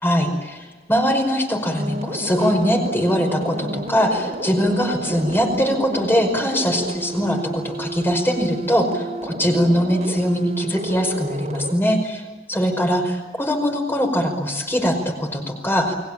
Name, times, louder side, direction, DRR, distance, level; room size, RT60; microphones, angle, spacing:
voice 1, 0.0-15.9, equal, 10° left, 4 dB, 5.1 m, -21 dB
sound 1, 1.8-11.7, right 1 dB, 40° right, 3.9 m, -31 dB
29.0 x 23.0 x 8.8 m, 1.3 s
head